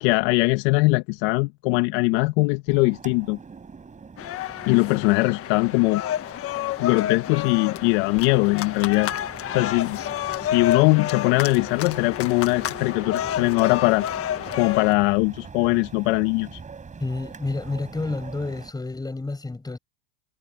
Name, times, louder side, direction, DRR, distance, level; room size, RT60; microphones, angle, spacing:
voice 1, 0.0-3.4 4.7-6.0 6.8-9.1 9.5-10.0 10.4-14.0 14.5-16.6, left 24 dB, 50° left, 1.6 m, -21 dB
sound 1, 2.7-18.7, right 5 dB, 15° right, 7.6 m, -43 dB
sound 2, 4.2-14.9, left 11 dB, 30° left, 1.5 m, -30 dB
voice 2, 17.0-19.8, left 3 dB, 10° left, 7.1 m, -30 dB
supercardioid pair, 135°, 48 cm